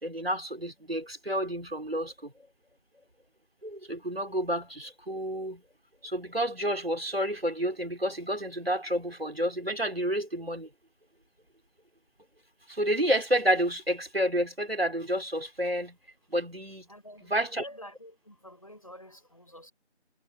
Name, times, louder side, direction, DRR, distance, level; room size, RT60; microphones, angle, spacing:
voice 1, 0.0-2.5 3.6-5.6 6.0-10.7 12.7-16.0 16.3-16.9 17.2-17.7, equal, 60° right, 4.0 m, -30 dB
voice 2, 16.9-19.7, equal, 30° left, 6.7 m, -48 dB
figure-of-eight pair, 180°, 34 cm